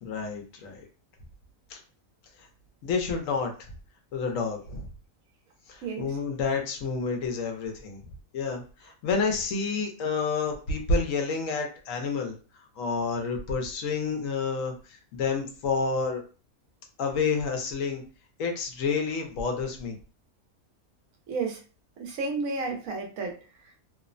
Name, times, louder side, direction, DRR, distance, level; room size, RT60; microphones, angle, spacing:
voice 1, 0.0-0.8 1.7-1.8 2.8-3.7 4.1-4.9 5.7-8.0 8.3-12.4 12.8-16.2 17.0-18.0 18.4-20.0, left 4 dB, 75° left, 3 dB, 1.0 m, -29 dB
voice 2, 5.8-6.2 21.3-21.6 22.0-23.4, right 4 dB, 85° right, 2 dB, 1.1 m, -31 dB
2.9 x 2.0 x 2.4 m, 0.36 s
omnidirectional pair, 1.4 m